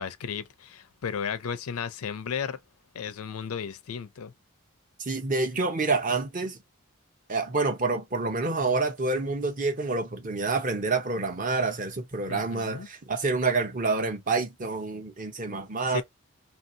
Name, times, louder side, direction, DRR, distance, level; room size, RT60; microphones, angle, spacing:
voice 1, 0.0-2.6 2.9-4.3 12.3-12.9 15.9-16.0, left 7 dB, 80° left, 0.5 m, -34 dB
voice 2, 5.0-6.6 7.3-16.0, right 3 dB, 35° right, 0.8 m, -28 dB
2.8 x 2.8 x 2.7 m
head